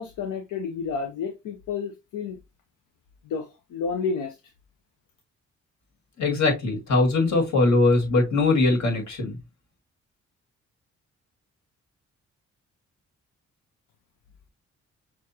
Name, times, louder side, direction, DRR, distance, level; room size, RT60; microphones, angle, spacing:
voice 1, 0.0-2.4 3.2-4.4, left 5 dB, 80° left, 0.7 m, -30 dB
voice 2, 6.2-9.3, left 3 dB, 60° left, 2.0 m, -21 dB
6.2 x 2.4 x 2.8 m
supercardioid pair, 55°, 31 cm